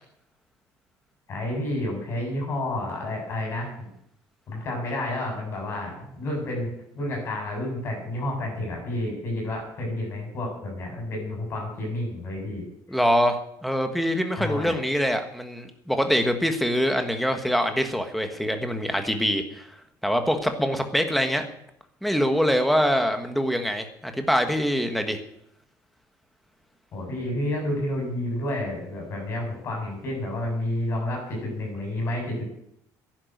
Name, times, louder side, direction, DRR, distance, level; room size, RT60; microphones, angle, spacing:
voice 1, 1.3-3.9 4.5-13.0 14.4-14.8 26.9-32.5, left 1 dB, 35° left, 0 dB, 7.5 m, -30 dB
voice 2, 12.9-19.7 20.0-21.5 22.0-25.2, equal, ahead, 6 dB, 1.5 m, -24 dB
11.0 x 11.0 x 9.5 m, 0.75 s
cardioid pair, 170°, 7 cm